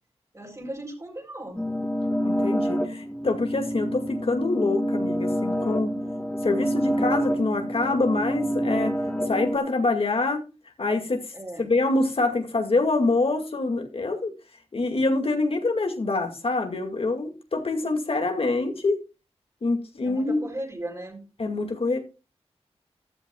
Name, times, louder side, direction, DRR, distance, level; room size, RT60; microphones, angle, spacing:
voice 1, 0.3-1.6 2.4-2.7 6.8-7.2 11.3-11.7 20.0-21.2, right 1 dB, 30° right, 3 dB, 4.0 m, -38 dB
sound 1, 1.6-9.6, equal, 10° left, 1.6 m, -27 dB
voice 2, 2.2-5.9 6.4-8.9 9.3-10.4 10.8-11.2 11.6-14.3 14.7-19.0 19.6-20.4 21.4-22.0, left 3 dB, 60° left, 4 dB, 2.2 m, -25 dB
14.5 x 12.0 x 2.3 m, 0.31 s
wide cardioid pair, 80°, 11 cm